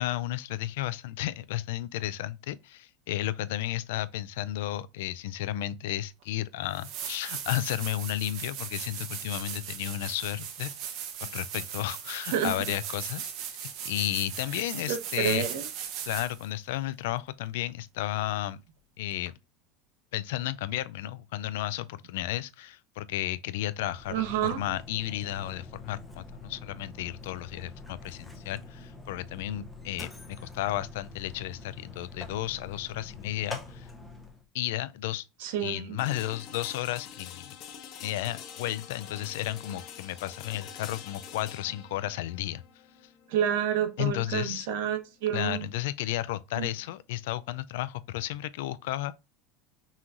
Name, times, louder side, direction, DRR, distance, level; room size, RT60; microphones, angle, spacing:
voice 1, 0.0-10.7 11.2-13.6 13.8-15.5 16.0-18.6 19.0-19.3 20.1-33.9 34.5-35.2 35.6-37.5 38.0-42.6 44.0-44.7 45.3-49.2, left 14 dB, 75° left, 0.3 m, -33 dB
sound 1, 6.2-6.3 6.7-16.5 19.3-19.4, right 9 dB, 45° right, 0.7 m, -38 dB
voice 2, 14.9-15.7 24.1-24.6 35.4-36.0 43.3-45.7 46.6-46.7, right 9 dB, 65° right, 1.0 m, -29 dB
Mechanisms, 23.7-34.4, left 2 dB, 5° left, 0.6 m, -46 dB
sound 2, 36.0-45.9, left 8 dB, 40° left, 0.7 m, -46 dB
5.6 x 3.0 x 2.5 m
supercardioid pair, 170°, 0 cm